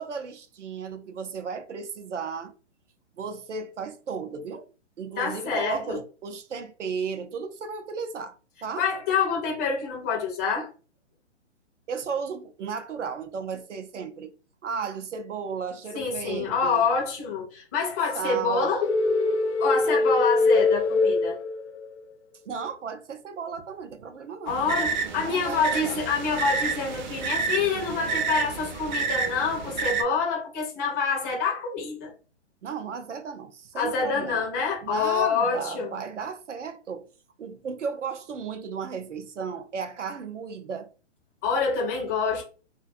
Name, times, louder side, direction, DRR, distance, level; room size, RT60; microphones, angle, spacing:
voice 1, 0.0-2.5 3.2-4.7 5.0-8.9 11.9-14.3 14.6-16.9 18.1-18.7 22.5-24.8 25.1-26.0 32.6-34.4 34.8-37.1 37.4-40.9, right 6 dB, 90° right, 0.6 m, -34 dB
voice 2, 5.2-6.0 8.8-10.7 15.9-18.8 19.6-21.4 24.5-32.1 33.8-35.9 41.4-42.4, left 5 dB, 15° left, 0.3 m, -26 dB
sound 1, 18.8-22.0, left 3 dB, 70° left, 0.5 m, -23 dB
sound 2, 24.5-30.0, right 5 dB, 40° right, 0.5 m, -29 dB
2.4 x 2.2 x 2.5 m
hypercardioid pair, 135°, 35 cm